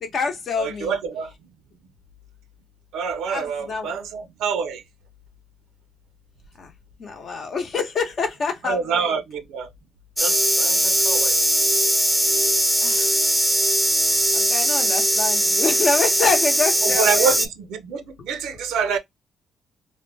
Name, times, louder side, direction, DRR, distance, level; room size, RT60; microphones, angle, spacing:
voice 1, 0.0-1.0 3.3-3.9 6.6-6.7 7.0-9.1 10.8-10.9 12.8-13.2 14.1-17.3, left 4 dB, 55° left, 0.8 m, -26 dB
voice 2, 0.6-1.3 2.9-4.8 8.6-9.7 10.2-11.3 16.8-19.0, right 6 dB, 85° right, 0.4 m, -26 dB
sound 1, 10.2-17.5, right 1 dB, 5° right, 0.3 m, -20 dB
2.4 x 2.1 x 3.2 m
cardioid pair, 90°, 0 cm